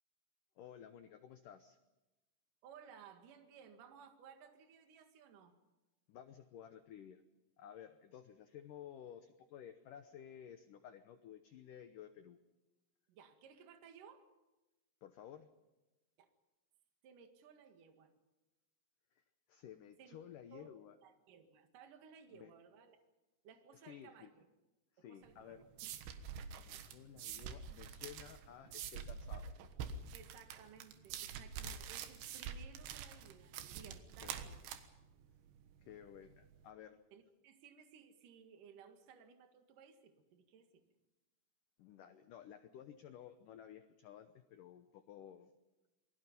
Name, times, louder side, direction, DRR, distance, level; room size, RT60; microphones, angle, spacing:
voice 1, 0.6-1.8 6.1-7.2 7.6-12.4 15.0-15.5 19.1-19.2 19.5-21.0 22.3-22.5 23.7-24.3 24.9-25.7 26.6-29.6 34.2-34.3 35.8-37.0 41.8-45.5, left 9 dB, 90° left, 8 dB, 1.8 m, -54 dB
voice 2, 2.6-5.6 13.1-14.2 16.2-16.3 17.0-18.1 20.0-20.2 20.5-20.7 21.0-23.0 23.4-24.4 25.0-25.9 26.6-27.0 30.1-34.6 37.1-40.8, right 7 dB, 55° right, 5 dB, 3.1 m, -59 dB
sound 1, 25.3-36.6, right 7 dB, 90° right, 3.7 m, -47 dB
28.0 x 21.5 x 5.4 m, 1.1 s
omnidirectional pair, 5.2 m